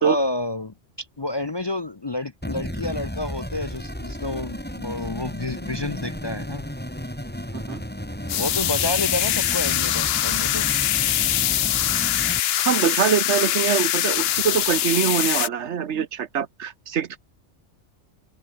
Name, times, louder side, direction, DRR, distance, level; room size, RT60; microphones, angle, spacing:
voice 1, 0.0-6.7 8.3-10.7, left 2 dB, 30° left, 0.6 m, -29 dB
sound 1, 2.4-12.4, equal, 10° left, 3.8 m, -33 dB
sound 2, 8.3-15.5, left 12 dB, 65° left, 0.8 m, -23 dB
voice 2, 12.6-17.2, right 8 dB, 75° right, 1.3 m, -24 dB
open air
omnidirectional pair, 1.2 m